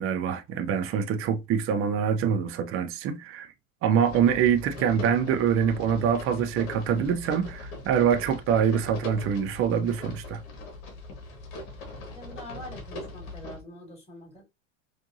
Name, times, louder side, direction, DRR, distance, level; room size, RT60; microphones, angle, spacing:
voice 1, 0.0-3.5 3.8-10.4, right 8 dB, 35° right, 0.6 m, -25 dB
sound 1, 4.0-13.6, left 2 dB, 60° left, 1.4 m, -41 dB
voice 2, 12.1-14.4, equal, 15° left, 2.6 m, -44 dB
4.5 x 2.6 x 2.6 m
hypercardioid pair, 90°, 39 cm